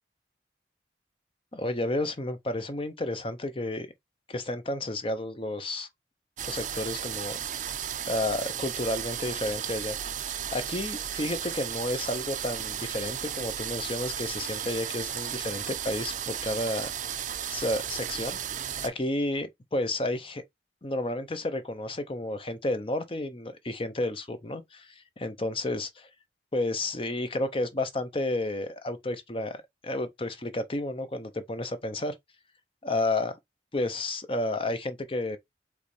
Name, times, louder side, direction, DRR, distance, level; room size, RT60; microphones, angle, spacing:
voice 1, 1.5-3.9 4.3-5.9 6.4-7.4 8.1-10.1 10.5-16.9 17.5-18.4 18.8-20.4 20.8-26.1 26.5-29.6 29.8-32.1 32.8-33.3 33.7-35.4, left 2 dB, 30° left, 0.7 m, -31 dB
sound 1, 6.4-18.9, right 9 dB, 45° right, 0.5 m, -34 dB
5.2 x 3.2 x 3.2 m
head